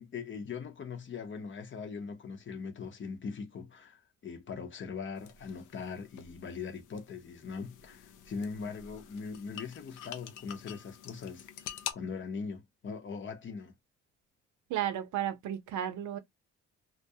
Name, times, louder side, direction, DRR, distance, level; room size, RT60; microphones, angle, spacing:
voice 1, 0.0-13.7, left 5 dB, 40° left, 0.8 m, -41 dB
sound 1, 5.2-11.9, left 10 dB, 80° left, 0.5 m, -47 dB
voice 2, 14.7-16.2, right 11 dB, 75° right, 0.6 m, -33 dB
2.4 x 2.2 x 2.6 m
cardioid pair, 90°, 30 cm